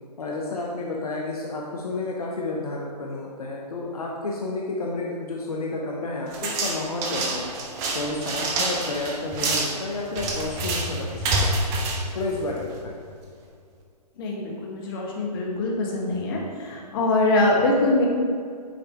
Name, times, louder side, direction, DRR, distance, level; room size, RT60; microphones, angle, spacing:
voice 1, 0.2-7.5 7.9-11.8 12.1-13.0, left 2 dB, 60° left, -1 dB, 1.0 m, -31 dB
sound 1, 6.3-12.9, right 2 dB, 15° right, 0.6 m, -27 dB
voice 2, 14.2-18.1, left 2 dB, 35° left, -2 dB, 1.4 m, -23 dB
8.9 x 4.8 x 3.5 m, 2.2 s
figure-of-eight pair, 140°, 21 cm